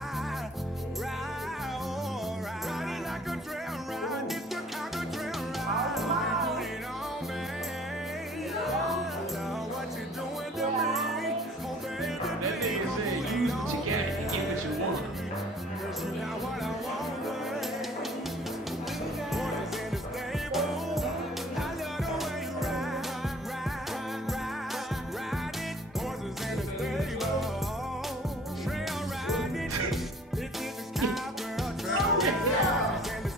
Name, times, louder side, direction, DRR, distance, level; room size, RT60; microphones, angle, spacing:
voice 1, 0.6-2.5 8.3-9.0, left 2 dB, 60° left, 1.7 m, -39 dB
voice 2, 1.6-2.3 2.6-3.0 3.3-3.4 3.9-4.0 4.7-5.3 6.0-6.2 7.3-7.5 8.6-9.1 9.5-9.6 10.2-10.3 10.6-10.7 11.6-12.2 12.6-13.0 13.5-13.8 16.6-17.4 19.3-19.5 20.5-20.8 21.6-21.7 22.0-22.2 22.6-22.9 23.9-24.0 24.3-24.8 25.3-25.5 26.0-26.1 26.8-27.5 28.0-28.1 28.7-29.7 30.6-30.7 31.4-32.9, equal, ahead, 0.3 m, -32 dB
voice 3, 4.0-4.4 5.7-6.4 7.8-8.0 9.1-10.2 16.7-17.6 26.5-27.5 28.5-30.0 31.6-33.2, left 1 dB, 80° left, 2.2 m, -34 dB
sound 1, 4.5-22.9, left 1 dB, 40° left, 1.8 m, -41 dB
voice 4, 5.7-6.7 8.7-8.8 10.5-11.5 20.5-21.3 22.0-23.2 26.0-26.1 26.5-27.6 28.2-28.5 28.8-28.9 32.3-32.4, right 3 dB, 30° right, 0.7 m, -34 dB
voice 5, 12.0-15.2 29.4-30.1 31.0-31.1 32.2-32.3, right 4 dB, 90° right, 0.8 m, -32 dB
5.5 x 4.3 x 4.9 m
head